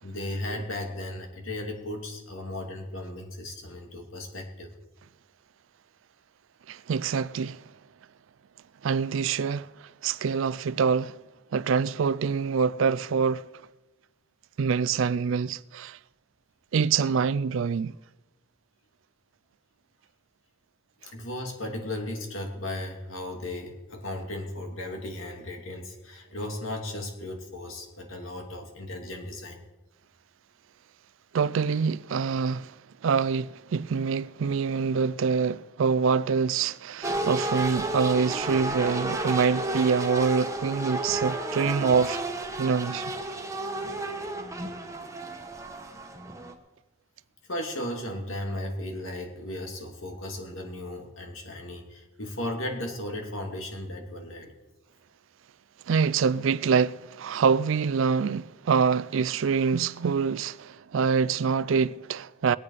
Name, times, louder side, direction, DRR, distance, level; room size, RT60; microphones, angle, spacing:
voice 1, 0.0-4.7 21.1-29.6 47.5-54.5, left 1 dB, 75° left, 2.7 m, -36 dB
voice 2, 6.7-7.6 8.8-9.7 10.0-11.1 11.5-13.5 14.6-16.0 16.7-17.9 31.3-32.7 33.0-42.2 42.6-43.0 55.9-62.6, right 5 dB, 65° right, 0.4 m, -25 dB
sound 1, 37.0-46.5, right 2 dB, 15° right, 1.1 m, -32 dB
21.0 x 8.7 x 5.0 m
head